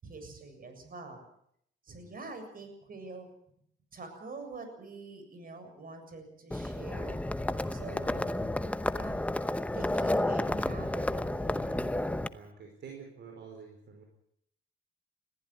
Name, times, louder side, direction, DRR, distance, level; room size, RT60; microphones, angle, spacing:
voice 1, 0.0-1.2 1.8-3.3 3.9-7.4 7.7-8.5 9.0-9.2 9.7-12.1, right 3 dB, 45° right, 7 dB, 7.3 m, -46 dB
Livestock farm animals working animals, 6.5-12.3, left 1 dB, 5° left, 0.9 m, -31 dB
voice 2, 12.3-14.0, right 6 dB, 65° right, 2 dB, 4.9 m, -49 dB
21.0 x 15.0 x 9.7 m, 0.71 s
cardioid pair, 90°, 20 cm